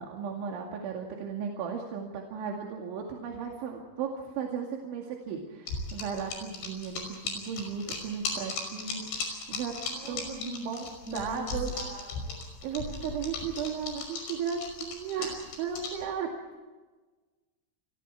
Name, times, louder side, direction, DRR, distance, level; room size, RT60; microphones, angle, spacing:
voice 1, 0.0-11.7 12.6-16.3, right 7 dB, 85° right, 0 dB, 4.6 m, -35 dB
sound 1, 5.7-16.0, left 4 dB, 80° left, 7.9 m, -36 dB
voice 2, 9.9-12.3 16.4-16.6, right 1 dB, 65° right, 2 dB, 9.6 m, -42 dB
29.5 x 23.5 x 4.8 m, 1.3 s
omnidirectional pair, 5.3 m